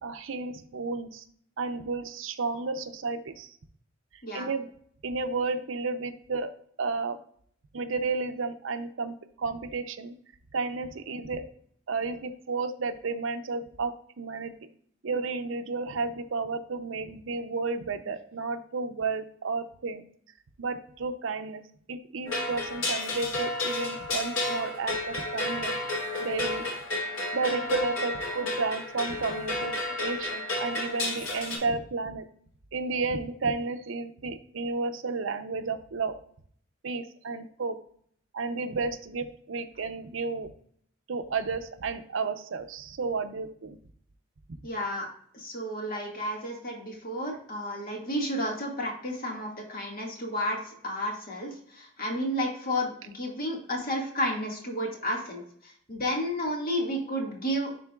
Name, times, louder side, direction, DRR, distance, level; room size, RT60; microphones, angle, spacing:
voice 1, 0.0-1.2 1.6-3.5 4.3-4.7 5.0-6.5 6.8-7.2 7.7-10.2 10.5-11.4 11.9-14.5 15.0-20.0 20.6-21.6 21.9-25.8 26.2-26.7 27.3-29.7 30.0-32.3 32.7-36.1 36.8-37.8 38.3-40.5 41.1-43.8, right 4 dB, 75° right, 10 dB, 0.6 m, -32 dB
sound 1, 22.3-31.6, left 2 dB, 85° left, 2.8 m, -31 dB
voice 2, 44.6-57.7, equal, 50° left, 0 dB, 1.8 m, -32 dB
11.0 x 3.8 x 2.3 m, 0.62 s
head